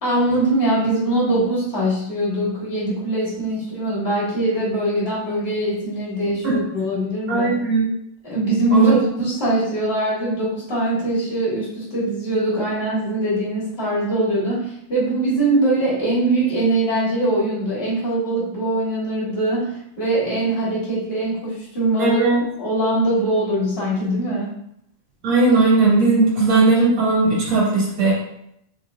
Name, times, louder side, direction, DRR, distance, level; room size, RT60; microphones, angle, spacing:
voice 1, 0.0-7.5 8.2-22.2 22.6-24.5, right 1 dB, 40° left, -8 dB, 0.8 m, -22 dB
voice 2, 7.3-7.9 8.7-9.0 22.0-22.4 25.2-28.1, right 3 dB, 40° right, -6 dB, 1.2 m, -17 dB
4.2 x 3.8 x 2.3 m, 0.76 s
omnidirectional pair, 3.6 m